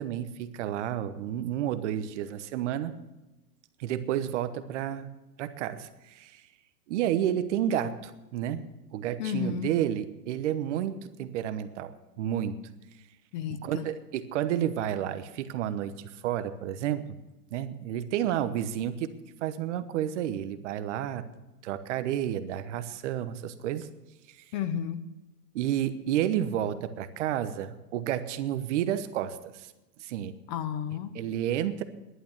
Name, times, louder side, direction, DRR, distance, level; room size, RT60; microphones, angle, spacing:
voice 1, 0.0-2.9 3.8-6.4 6.9-8.6 8.9-12.6 13.6-17.2 17.5-19.1 19.4-21.3 21.6-23.9 24.3-24.4 25.5-29.7 30.0-30.4 31.1-31.8, right 11 dB, 45° right, 11 dB, 1.1 m, -31 dB
voice 2, 9.2-9.7 13.3-13.9 24.5-25.0 30.5-31.2, left 8 dB, 30° left, 12 dB, 0.6 m, -32 dB
11.5 x 9.2 x 8.7 m, 1.1 s
hypercardioid pair, 140°, 48 cm